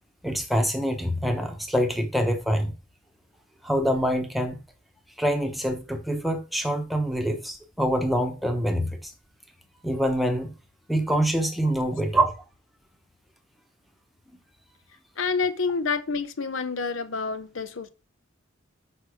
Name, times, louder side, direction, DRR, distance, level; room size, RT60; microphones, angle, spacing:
voice 1, 0.2-2.7 3.6-4.6 5.2-9.1 9.8-10.5 10.9-12.3, equal, ahead, 0.9 m, -25 dB
voice 2, 15.2-17.9, left 4 dB, 80° left, 0.8 m, -28 dB
6.6 x 5.2 x 4.8 m
head